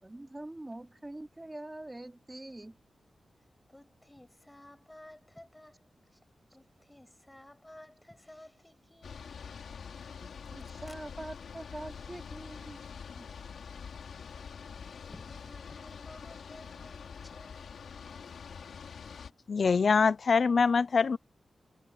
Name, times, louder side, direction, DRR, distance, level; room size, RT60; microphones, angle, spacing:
voice 1, 0.0-2.8 10.2-12.8 13.1-13.3, right 1 dB, 20° right, 3.1 m, -44 dB
voice 2, 3.7-5.8 6.5-9.5 15.0-17.8, left 1 dB, 15° left, 7.6 m, -54 dB
sound 1, 9.0-19.3, left 6 dB, 80° left, 3.9 m, -45 dB
voice 3, 19.5-21.2, left 5 dB, 65° left, 0.7 m, -24 dB
cardioid pair, 55°, 0 cm